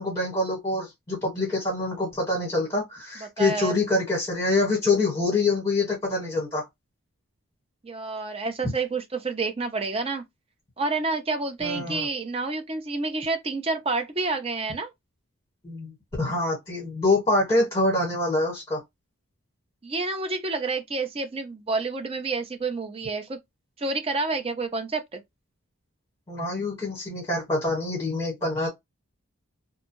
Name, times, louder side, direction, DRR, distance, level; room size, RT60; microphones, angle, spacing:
voice 1, 0.0-6.7 8.6-8.7 11.6-12.0 15.6-15.9 16.2-18.8 26.3-28.7, left 2 dB, 20° left, 1.2 m, -25 dB
voice 2, 3.4-3.7 7.8-10.2 10.8-14.9 19.8-23.4 23.8-25.2, right 3 dB, 25° right, 0.4 m, -29 dB
2.6 x 2.2 x 2.9 m
head